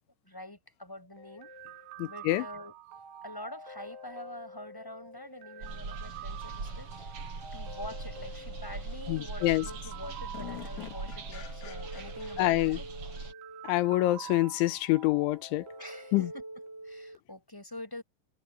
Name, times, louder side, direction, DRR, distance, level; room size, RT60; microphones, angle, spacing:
voice 1, 0.2-1.5 2.0-2.8 3.2-7.1 7.5-12.9 15.8-16.4 16.8-18.0, left 1 dB, 5° left, 6.5 m, -45 dB
sound 1, 1.2-17.2, right 4 dB, 70° right, 5.7 m, -46 dB
voice 2, 2.0-2.4 9.1-9.7 12.4-12.8 13.7-15.6 16.1-16.3, left 17 dB, 85° left, 3.2 m, -26 dB
sound 2, 5.1-5.2 7.9-8.0 8.5-9.0 9.4-9.5 9.8-12.7, left 10 dB, 55° left, 2.4 m, -47 dB
sound 3, 5.6-13.3, right 3 dB, 30° right, 6.4 m, -41 dB
omnidirectional pair, 5.6 m